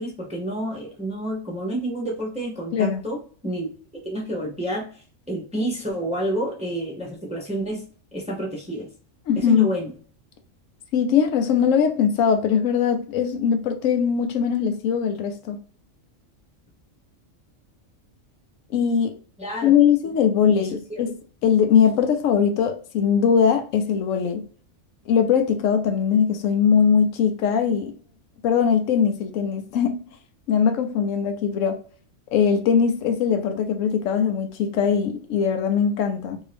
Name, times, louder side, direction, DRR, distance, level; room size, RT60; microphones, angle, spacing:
voice 1, 0.0-7.8 8.1-8.9 9.3-9.9 19.4-19.8 20.0-20.1 20.6-21.0, right 1 dB, 5° right, 0.6 m, -29 dB
voice 2, 2.7-3.0 9.3-9.7 10.9-15.6 18.7-19.1 19.6-21.1 21.4-24.4 25.1-27.9 28.4-30.0 30.5-31.8 32.3-36.4, left 7 dB, 80° left, 0.9 m, -21 dB
2.7 x 2.7 x 3.3 m
omnidirectional pair, 1.3 m